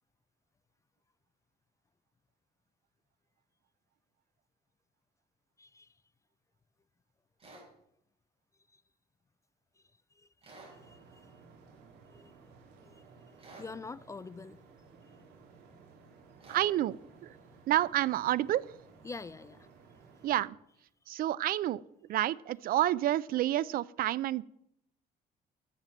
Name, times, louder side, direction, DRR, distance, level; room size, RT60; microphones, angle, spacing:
voice 1, 5.6-5.9 8.7-8.8 10.1-10.5 10.8-11.3 12.1-12.3 12.8-14.6 19.0-19.7, left 4 dB, 20° left, 0.4 m, -46 dB
sound 1, 7.4-7.7 10.4-10.8 13.4-13.7 16.4-16.7, right 2 dB, 35° right, 5.3 m, -51 dB
sound 2, 10.6-20.5, right 4 dB, 80° right, 2.9 m, -57 dB
voice 2, 16.5-17.4 17.7-18.7 20.2-20.6 21.1-21.8 22.1-24.4, right 13 dB, 60° right, 0.4 m, -29 dB
10.5 x 7.4 x 6.8 m
cardioid pair, 110°, 17 cm